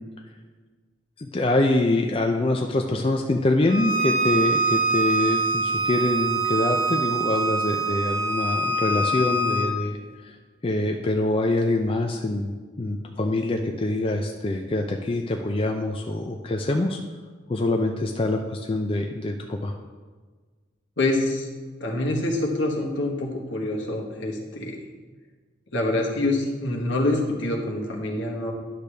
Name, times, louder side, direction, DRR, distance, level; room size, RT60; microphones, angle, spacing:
voice 1, 1.2-10.4 10.6-17.0 17.5-19.7, left 2 dB, 30° left, 3 dB, 0.4 m, -25 dB
Bowed string instrument, 3.7-9.7, right 3 dB, 50° right, 1.6 m, -24 dB
voice 2, 21.0-21.5 21.8-24.8 25.7-28.5, left 2 dB, 70° left, 0 dB, 1.4 m, -26 dB
10.0 x 6.6 x 3.3 m, 1.4 s
head